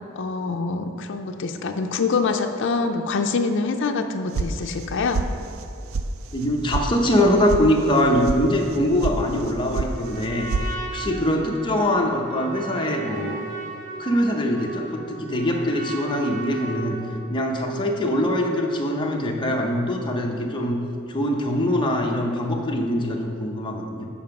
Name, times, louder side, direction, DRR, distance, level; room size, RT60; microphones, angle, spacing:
voice 1, 0.2-5.2 11.3-11.5, left 4 dB, 60° left, 5 dB, 0.5 m, -25 dB
sound 1, 4.3-4.9 5.1-5.7 5.9-6.0 6.4-6.8 7.1-7.6 7.9-8.4 8.7-9.2 9.4-9.9 10.2-10.7, right 4 dB, 80° right, 0.4 m, -26 dB
voice 2, 6.3-13.4 14.0-17.0 17.3-20.8 21.1-24.1, left 1 dB, 25° left, 1 dB, 0.7 m, -23 dB
Trumpet, 9.9-17.2, right 2 dB, 40° right, 0.9 m, -36 dB
7.2 x 4.8 x 5.8 m, 2.7 s
head